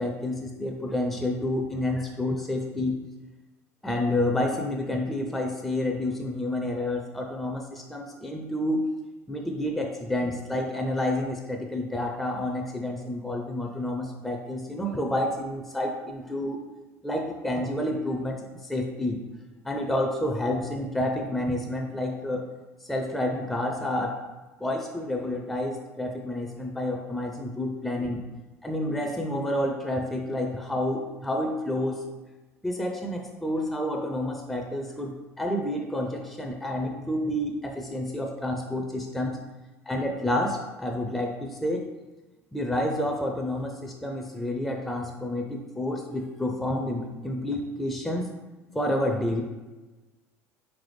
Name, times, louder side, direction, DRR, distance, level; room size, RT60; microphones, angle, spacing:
voice 1, 0.0-3.0 3.8-8.9 9.3-16.6 17.0-19.2 19.6-22.5 22.8-24.2 24.6-28.2 28.6-32.0 32.6-39.4 39.9-41.9 42.5-48.3 48.7-49.4, left 1 dB, 5° left, 2 dB, 0.4 m, -29 dB
3.5 x 3.2 x 3.3 m, 1.2 s
figure-of-eight pair, 70°, 8 cm